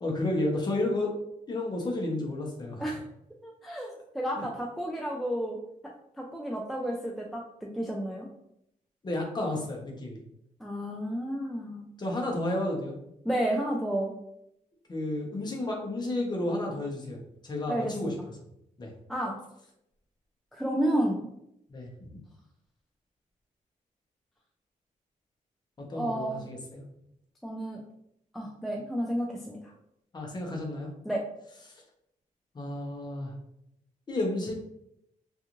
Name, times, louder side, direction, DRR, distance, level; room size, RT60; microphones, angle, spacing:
voice 1, 0.0-1.1 1.5-2.8 4.4-4.5 9.0-10.2 12.0-13.0 14.9-17.2 17.4-18.1 18.8-18.9 21.7-21.9 25.9-26.8 30.1-30.9 32.5-33.3 34.1-34.5, left 1 dB, 30° left, -1 dB, 0.7 m, -31 dB
voice 2, 3.4-5.6 5.8-8.3 10.6-11.8 13.2-14.1 17.7-18.2 19.1-19.4 20.5-21.3 25.9-26.4 27.4-27.8 28.3-29.7 31.0-31.2, right 1 dB, ahead, -1 dB, 0.3 m, -31 dB
2.5 x 2.4 x 2.9 m, 0.78 s
wide cardioid pair, 125°, 14 cm